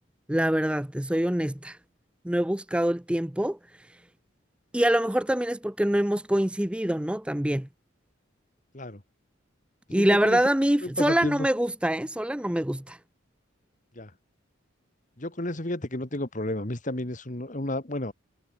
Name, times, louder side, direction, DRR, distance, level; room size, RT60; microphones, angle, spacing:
voice 1, 0.3-1.8 2.2-3.6 4.7-7.7 9.9-13.0, right 1 dB, 5° right, 0.5 m, -25 dB
voice 2, 9.9-10.4 10.8-11.5 14.0-14.1 15.2-18.1, left 1 dB, 40° left, 1.9 m, -32 dB
head